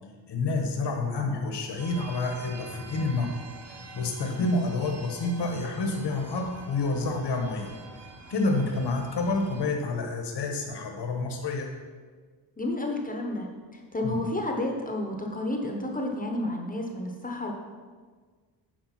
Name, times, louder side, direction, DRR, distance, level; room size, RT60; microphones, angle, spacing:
voice 1, 0.3-3.3 3.9-7.7 8.3-11.7 14.0-14.2, left 3 dB, 60° left, 2 dB, 1.4 m, -28 dB
sound 1, 1.8-9.7, right 2 dB, 35° right, 1.0 m, -46 dB
voice 2, 8.5-8.8 12.6-17.5, left 1 dB, 20° left, 1 dB, 0.9 m, -31 dB
9.2 x 4.9 x 5.9 m, 1.5 s
wide cardioid pair, 160°, 45 cm